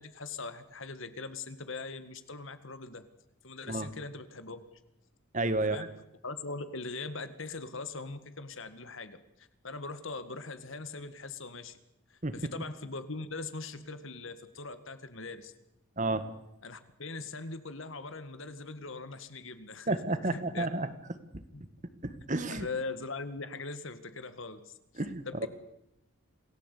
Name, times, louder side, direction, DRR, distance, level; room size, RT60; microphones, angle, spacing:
voice 1, 0.0-3.1 3.4-4.6 5.6-6.0 6.2-11.8 12.1-15.5 16.6-20.0 20.2-20.7 21.5-21.6 22.5-24.8 25.3-25.5, left 3 dB, 65° left, 11 dB, 1.9 m, -41 dB
voice 2, 5.3-5.9 12.2-12.4 16.0-16.3 19.9-20.9 22.0-22.7 25.0-25.5, right 2 dB, 35° right, 12 dB, 1.6 m, -31 dB
27.5 x 17.5 x 8.4 m, 0.83 s
head